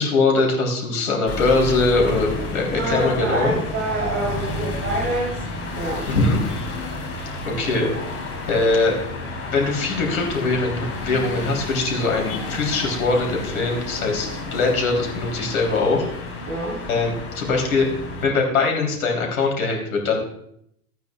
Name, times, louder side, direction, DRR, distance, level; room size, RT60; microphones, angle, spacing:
voice 1, 0.0-3.5 6.1-6.5 7.4-7.9 8.5-9.0 9.5-16.1 16.9-17.9 18.2-20.2, left 3 dB, 70° left, 0 dB, 3.4 m, -22 dB
sound 1, 1.3-18.3, left 2 dB, 30° left, 3.6 m, -31 dB
voice 2, 2.7-5.4 5.7-6.1 16.5-16.8, right 2 dB, 30° right, -4 dB, 3.7 m, -26 dB
15.5 x 9.2 x 2.4 m, 0.73 s
hypercardioid pair, 95°, 44 cm